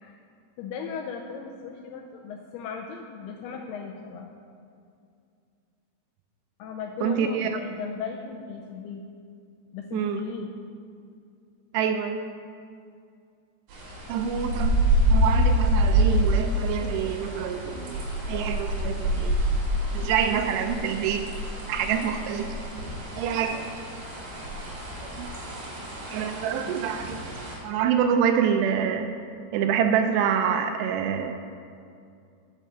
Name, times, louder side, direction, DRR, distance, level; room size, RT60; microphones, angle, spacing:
voice 1, 0.6-4.3 6.6-9.0 9.7-10.5 26.7-26.9, left 6 dB, 85° left, 2 dB, 2.4 m, -37 dB
voice 2, 7.0-7.7 9.9-10.2 11.7-12.2 14.1-14.8 15.1-19.4 19.9-21.3 21.7-22.6 23.2-23.6 25.0-25.3 26.1-27.2 27.6-29.1 29.5-31.3, right 8 dB, 80° right, 6 dB, 2.6 m, -26 dB
sound 1, 13.7-27.5, right 1 dB, 65° right, 4.4 m, -27 dB
9.0 x 6.6 x 7.4 m, 2.4 s
omnidirectional pair, 5.1 m